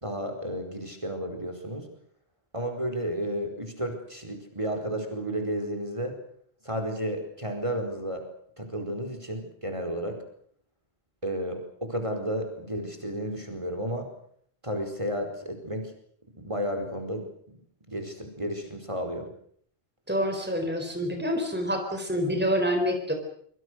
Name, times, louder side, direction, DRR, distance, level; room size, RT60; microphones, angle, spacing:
voice 1, 0.0-1.9 2.5-6.1 6.6-8.2 8.6-10.2 11.2-14.1 14.6-15.9 16.4-17.6 17.9-19.3, equal, 30° right, 5 dB, 4.8 m, -32 dB
voice 2, 20.1-23.1, equal, 10° right, 4 dB, 4.2 m, -27 dB
26.0 x 25.0 x 6.5 m, 0.64 s
omnidirectional pair, 1.1 m